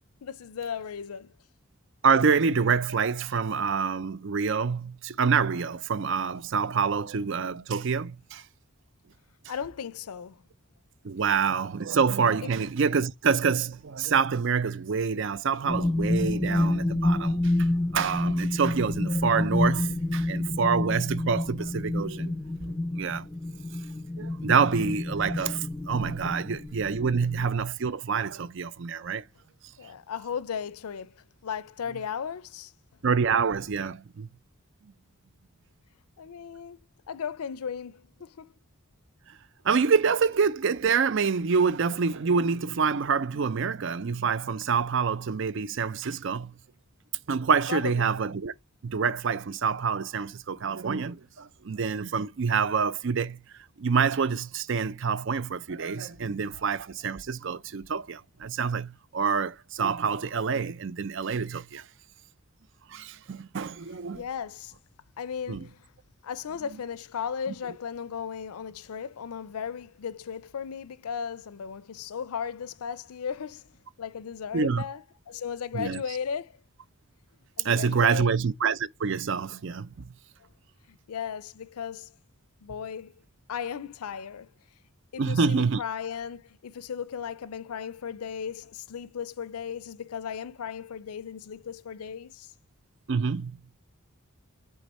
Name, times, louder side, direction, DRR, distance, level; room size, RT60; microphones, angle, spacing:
voice 1, 0.2-1.4 9.5-10.4 12.4-12.5 29.8-32.7 36.2-36.8 37.1-38.5 47.7-48.1 64.1-64.8 65.2-65.9 66.2-76.6 77.6-78.3 80.9-82.1 82.6-83.2 83.5-84.5 85.1-92.5, left 7 dB, 85° left, 0.5 m, -36 dB
voice 2, 2.0-8.4 11.0-17.7 17.9-22.3 23.0-23.3 24.2-29.2 33.0-34.3 39.6-46.5 47.3-48.5 48.8-53.4 53.8-61.8 62.9-64.2 65.5-65.7 74.5-74.8 75.7-76.0 77.6-80.1 85.2-85.8 93.1-93.6, right 5 dB, 55° right, 0.5 m, -27 dB
sound 1, 15.6-27.5, left 2 dB, 15° left, 0.4 m, -28 dB
8.4 x 3.6 x 4.2 m
head